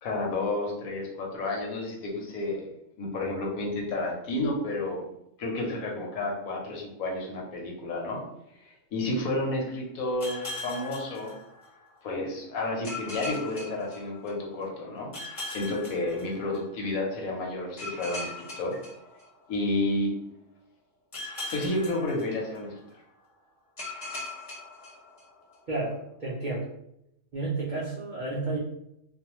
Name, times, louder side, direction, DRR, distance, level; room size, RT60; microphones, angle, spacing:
voice 1, 0.0-2.7 3.0-5.0 5.4-8.2 8.6-11.3 12.0-15.1 15.5-18.8 19.5-20.1 21.5-22.7, left 2 dB, 80° left, -1 dB, 1.1 m, -31 dB
sound 1, 10.2-12.0 12.8-14.6 15.1-16.9 17.8-19.8 21.1-22.9 23.8-25.6, left 2 dB, 30° left, 0.7 m, -40 dB
voice 2, 25.7-26.7 27.3-28.6, right 3 dB, 75° right, -5 dB, 0.4 m, -31 dB
2.5 x 2.1 x 2.9 m, 0.79 s
omnidirectional pair, 1.5 m